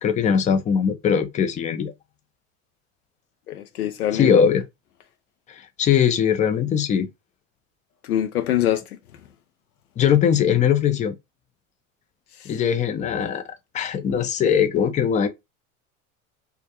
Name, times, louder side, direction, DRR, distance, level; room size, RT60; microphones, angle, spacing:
voice 1, 0.0-1.9 4.1-4.6 5.5-7.1 10.0-11.2 12.5-13.4 13.7-15.3, left 8 dB, 20° left, 0.4 m, -20 dB
voice 2, 3.5-4.5 8.0-9.0 12.4-12.5, left 11 dB, 90° left, 0.5 m, -24 dB
2.3 x 2.1 x 2.7 m
hypercardioid pair, 85°, 43 cm